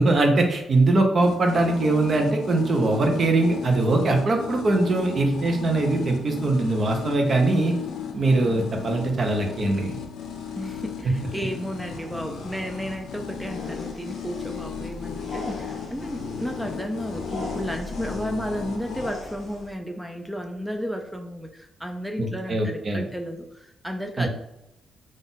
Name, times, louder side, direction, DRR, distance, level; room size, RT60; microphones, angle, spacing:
voice 1, 0.0-7.8 8.1-10.0 22.2-23.0 24.2-24.3, right 2 dB, 35° right, 3 dB, 0.7 m, -22 dB
sound 1, 1.2-19.1, left 7 dB, 80° left, 0.6 m, -36 dB
voice 2, 10.6-24.3, equal, ahead, 3 dB, 0.3 m, -33 dB
sound 2, 11.8-19.7, left 1 dB, 35° left, 1.1 m, -40 dB
3.9 x 2.5 x 3.9 m, 0.89 s
wide cardioid pair, 170°, 0 cm